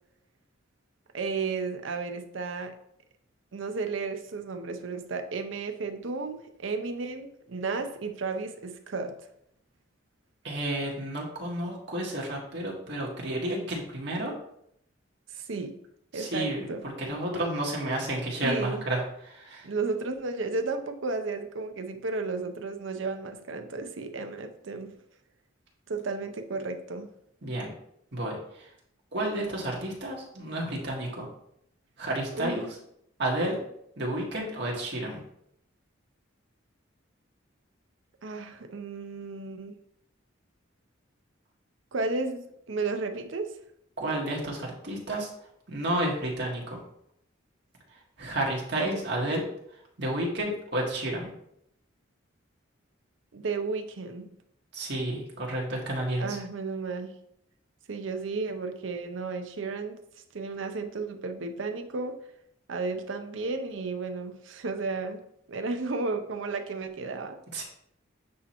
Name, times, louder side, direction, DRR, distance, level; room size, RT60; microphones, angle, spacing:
voice 1, 1.1-2.7 3.5-9.1 15.3-15.8 16.1-16.8 18.4-18.8 19.6-25.0 25.9-27.1 32.3-32.6 38.2-39.8 41.9-43.5 53.3-54.3 56.2-57.1 57.9-60.0 60.3-62.2 62.7-65.2 65.5-67.4, right 3 dB, 75° right, 7 dB, 0.6 m, -33 dB
voice 2, 10.4-14.3 16.1-19.7 27.4-27.7 28.1-28.7 29.1-31.3 32.0-32.7 33.2-33.6 34.0-35.2 44.0-45.3 45.7-46.8 48.2-49.5 50.0-51.3 54.7-56.4 67.5-67.6, right 1 dB, 55° right, -2 dB, 1.6 m, -31 dB
8.4 x 3.0 x 4.2 m, 0.74 s
head